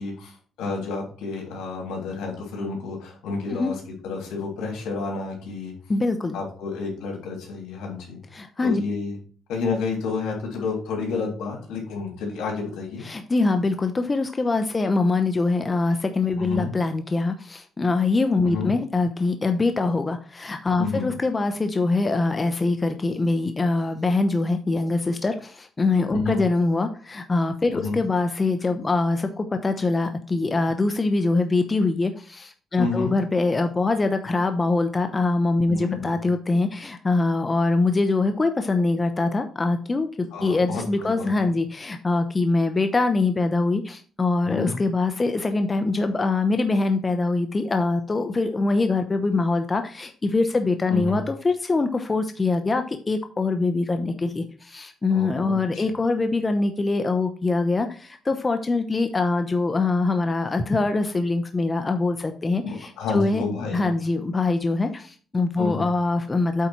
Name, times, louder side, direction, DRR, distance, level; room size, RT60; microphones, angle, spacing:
voice 1, 0.0-3.7 4.0-5.7 6.3-8.2 8.6-9.2 9.5-13.1 16.4-16.7 18.4-18.7 20.8-21.1 26.1-26.4 27.8-27.9 32.8-33.1 35.7-36.2 40.3-41.5 44.5-44.8 50.9-51.2 55.1-55.8 62.6-63.9 65.6-65.8, left 4 dB, 85° left, 0 dB, 3.3 m, -30 dB
voice 2, 5.9-6.4 8.3-8.8 13.0-63.4 63.7-66.7, left 3 dB, 25° left, 7 dB, 0.8 m, -23 dB
8.3 x 4.3 x 4.5 m, 0.40 s
cardioid pair, 90°, 0 cm